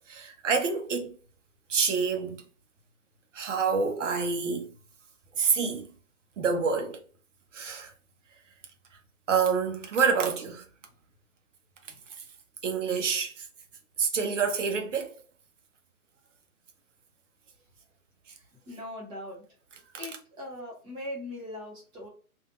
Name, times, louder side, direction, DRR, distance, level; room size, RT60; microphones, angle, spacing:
voice 1, 0.1-1.1 1.7-2.4 3.3-4.7 5.4-5.9 6.4-7.0 7.5-7.9 9.3-10.6 12.6-13.5 14.0-15.1, right 5 dB, 55° right, 0.9 m, -27 dB
voice 2, 18.3-19.4 20.0-22.1, left 1 dB, 10° right, 0.7 m, -40 dB
3.3 x 2.6 x 2.4 m
figure-of-eight pair, 135°, 43 cm